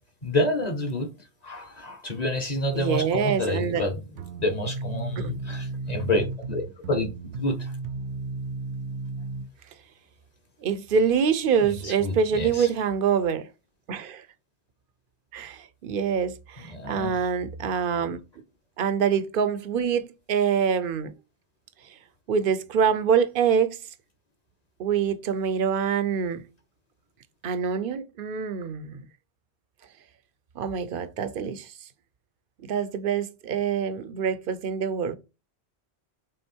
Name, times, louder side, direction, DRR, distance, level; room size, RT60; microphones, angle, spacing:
voice 1, 0.2-1.1 1.4-4.0 4.3-7.1 7.4-7.7 11.6-12.7 16.6-17.1, left 1 dB, 40° left, 1.3 m, -28 dB
voice 2, 2.7-3.8 5.2-5.4 10.6-13.5 13.9-14.2 15.3-18.2 18.8-21.1 22.3-23.8 24.8-26.4 27.4-29.1 30.6-31.7 32.6-35.2, right 7 dB, 55° right, 0.8 m, -25 dB
sound 1, 4.2-9.5, right 3 dB, 80° right, 1.0 m, -34 dB
6.4 x 3.8 x 4.4 m
omnidirectional pair, 1.1 m